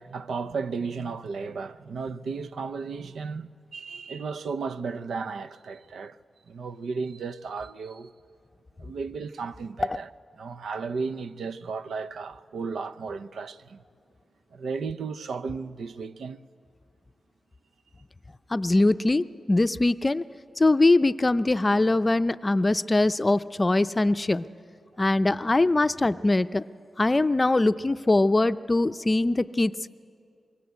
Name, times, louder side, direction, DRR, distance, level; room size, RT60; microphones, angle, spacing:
voice 1, 0.0-6.2 6.5-8.1 8.8-10.1 10.4-13.8 14.5-16.4, right 5 dB, 80° right, 0.6 m, -34 dB
voice 2, 18.5-20.2 20.6-24.5 25.0-26.6 27.0-29.9, left 2 dB, 25° left, 0.5 m, -22 dB
25.0 x 22.5 x 8.2 m
cardioid pair, 75°, 0 cm